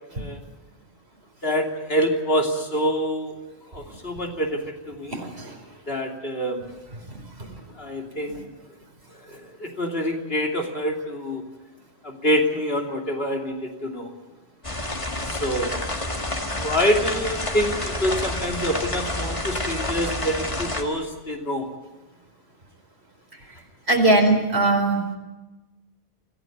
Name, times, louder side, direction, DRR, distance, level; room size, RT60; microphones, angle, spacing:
voice 1, 1.4-3.3 3.7-4.6 4.9-5.2 5.9-6.7 7.8-8.5 9.3-11.4 12.0-14.1 15.3-15.8 16.6-21.7, equal, 65° left, 2 dB, 3.2 m, -26 dB
voice 2, 5.1-5.5 7.1-7.5 8.3-8.4 23.9-25.2, right 2 dB, 80° right, 3 dB, 4.6 m, -21 dB
sound 1, 14.6-20.8, left 1 dB, 30° left, 2.2 m, -29 dB
24.5 x 16.0 x 9.3 m, 1.1 s
omnidirectional pair, 1.1 m